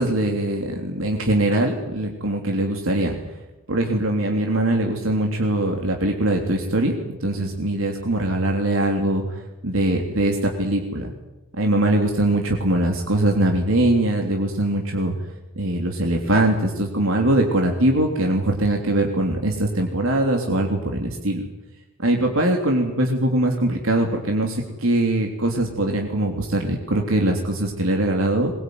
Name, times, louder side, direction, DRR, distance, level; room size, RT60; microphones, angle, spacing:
voice 1, 0.0-3.2 3.7-6.9 7.2-9.2 9.6-11.1 11.6-15.1 15.5-21.5 22.0-28.5, right 1 dB, 80° right, 2 dB, 3.3 m, -22 dB
22.0 x 22.0 x 9.6 m, 1.0 s
head